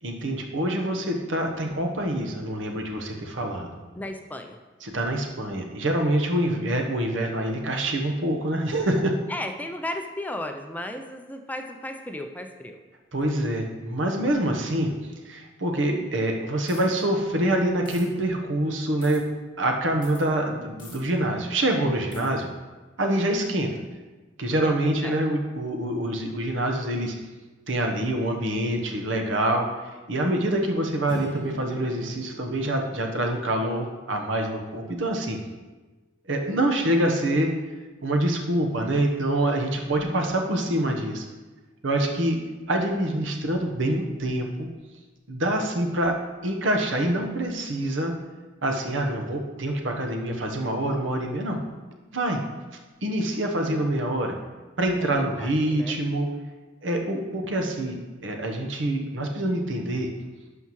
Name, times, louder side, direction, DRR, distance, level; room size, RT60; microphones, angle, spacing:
voice 1, 0.0-3.7 4.8-9.2 13.1-14.9 15.2-19.2 19.6-22.5 23.0-23.7 24.4-27.1 27.7-35.4 36.3-37.5 38.0-41.2 41.8-42.4 42.7-44.7 45.3-46.1 46.4-48.1 48.6-51.6 52.1-52.4 53.0-54.4 54.8-56.3 56.8-60.1, right 1 dB, 90° right, 3 dB, 1.0 m, -26 dB
voice 2, 3.9-4.6 9.3-12.8 24.6-25.2 55.0-56.0, left 1 dB, 10° left, 5 dB, 0.4 m, -35 dB
sound 1, 16.7-17.0 17.9-18.0 19.0-19.2 20.0-20.2 20.8-21.0 22.1-22.3, left 4 dB, 25° left, 2.2 m, -46 dB
sound 2, 31.1-33.9, right 2 dB, 25° right, 2.3 m, -42 dB
11.5 x 5.7 x 3.1 m, 1.2 s
head